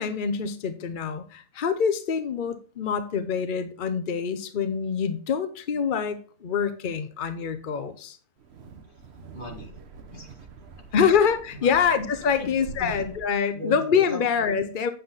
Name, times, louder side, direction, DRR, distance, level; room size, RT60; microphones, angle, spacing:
voice 1, 0.0-8.2 10.9-14.9, left 6 dB, 55° left, 10 dB, 0.5 m, -25 dB
Wind, 8.4-13.4, right 4 dB, 45° right, 1.1 m, -44 dB
voice 2, 9.3-9.8 10.1-10.7 11.0-11.1 11.6-11.8 12.4-12.5 12.8-12.9 13.5-13.8 14.1-14.2, left 1 dB, 30° left, 1 dB, 2.4 m, -38 dB
8.4 x 7.8 x 3.9 m, 0.42 s
omnidirectional pair, 1.7 m